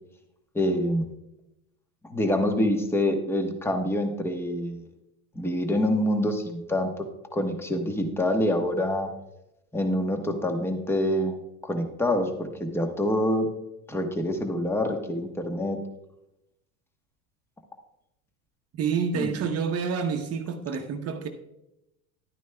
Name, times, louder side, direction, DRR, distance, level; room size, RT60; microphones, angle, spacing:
voice 1, 0.5-1.0 2.0-4.8 5.3-7.0 7.3-9.1 9.7-11.4 11.6-13.5 13.9-15.8 19.1-19.4, left 1 dB, 5° left, 1.0 m, -26 dB
voice 2, 18.8-21.3, right 6 dB, 35° right, 0.9 m, -28 dB
11.0 x 9.2 x 2.2 m
supercardioid pair, 115°, 41 cm